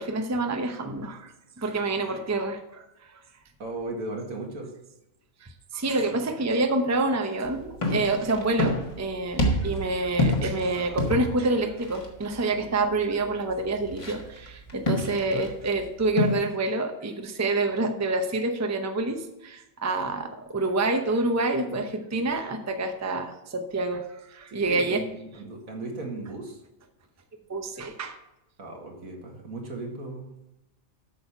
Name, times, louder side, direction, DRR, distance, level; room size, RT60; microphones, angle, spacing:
voice 1, 0.0-2.8 3.1-3.2 5.4-25.0 27.5-28.2, right 2 dB, 15° right, 5 dB, 0.7 m, -27 dB
voice 2, 3.6-4.7 24.5-26.6 28.6-30.4, right 2 dB, 80° right, 1 dB, 2.2 m, -36 dB
sound 1, 7.4-16.3, left 1 dB, 25° left, 1.5 m, -29 dB
8.5 x 6.4 x 5.7 m, 0.91 s
omnidirectional pair, 1.4 m